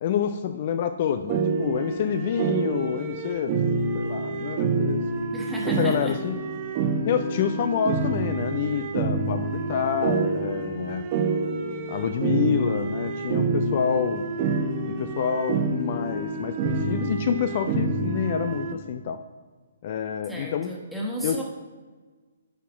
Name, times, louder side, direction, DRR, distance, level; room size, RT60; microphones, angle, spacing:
voice 1, 0.0-3.6 3.9-5.0 5.6-6.4 7.0-11.1 11.9-14.2 14.9-19.2 19.8-20.7 21.2-21.4, left 8 dB, 45° left, 9 dB, 0.4 m, -27 dB
sound 1, 1.3-18.7, right 4 dB, 35° right, 0.9 m, -27 dB
voice 2, 5.3-6.1 20.3-21.4, right 1 dB, ahead, -3 dB, 1.6 m, -33 dB
10.0 x 4.3 x 4.9 m, 1.4 s
figure-of-eight pair, 130°, 0 cm